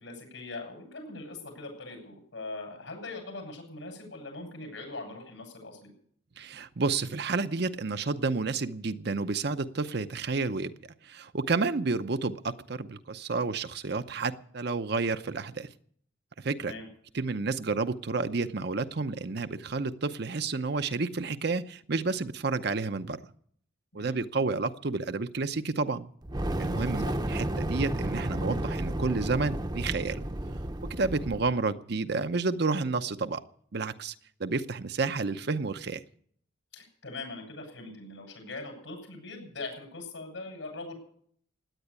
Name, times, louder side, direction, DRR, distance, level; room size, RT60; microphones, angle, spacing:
voice 1, 0.0-5.9 16.6-16.9 23.9-24.2 27.0-27.1 36.7-40.9, left 3 dB, 85° left, 2 dB, 7.6 m, -41 dB
voice 2, 6.4-15.7 16.4-16.7 17.1-23.2 23.9-26.1 26.6-30.2 30.9-33.4 33.7-34.1 34.4-36.0, right 3 dB, 55° right, 10 dB, 0.7 m, -30 dB
Fire, 26.2-31.5, right 1 dB, 20° right, 0.8 m, -32 dB
17.0 x 9.9 x 8.2 m, 0.63 s
head